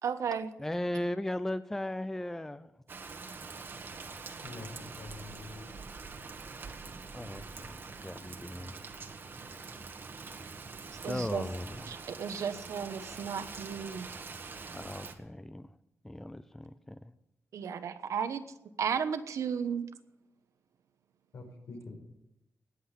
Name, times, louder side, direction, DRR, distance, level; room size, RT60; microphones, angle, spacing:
voice 1, 0.0-0.5 11.0-11.4 11.9-14.1 17.5-18.4 18.8-19.9, right 7 dB, 75° right, 10 dB, 1.1 m, -34 dB
voice 2, 0.6-2.7 7.1-8.8 11.1-11.9 14.7-15.7 16.0-17.0, left 1 dB, 5° left, 13 dB, 0.5 m, -37 dB
Rain, 2.9-15.2, right 4 dB, 40° right, 1.4 m, -45 dB
voice 3, 4.4-5.7 21.3-21.9, left 3 dB, 75° left, 2 dB, 5.2 m, -45 dB
19.5 x 8.0 x 8.2 m, 0.86 s
wide cardioid pair, 165°, 5 cm